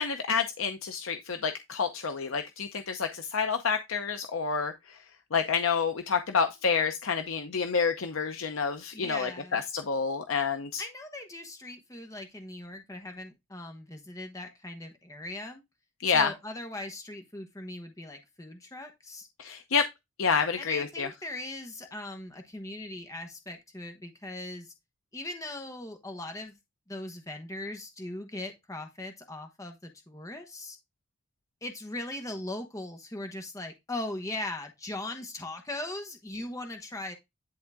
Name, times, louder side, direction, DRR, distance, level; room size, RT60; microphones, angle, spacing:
voice 1, 0.0-4.7 5.3-10.8 16.0-16.3 19.4-19.8 20.2-21.1, left 5 dB, 75° left, 0.7 m, -28 dB
voice 2, 8.9-9.6 10.8-15.6 16.1-19.3 20.6-24.7 25.1-26.6 26.9-30.8 31.6-37.2, left 1 dB, 15° left, 1.0 m, -39 dB
10.5 x 3.7 x 3.5 m
head